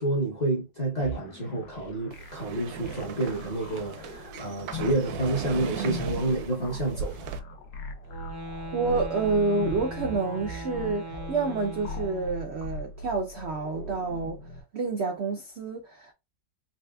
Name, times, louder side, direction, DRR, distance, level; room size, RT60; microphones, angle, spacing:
voice 1, 0.0-7.3, right 2 dB, 40° left, 0.6 m, -29 dB
sound 1, 1.0-14.6, left 1 dB, 65° left, 1.2 m, -40 dB
sound 2, 2.1-7.4, right 7 dB, 70° right, 1.0 m, -37 dB
sound 3, 8.0-12.6, equal, 30° right, 0.4 m, -39 dB
voice 2, 8.7-14.4 14.7-16.1, right 4 dB, 85° right, 0.5 m, -28 dB
4.1 x 3.2 x 2.3 m
omnidirectional pair, 1.9 m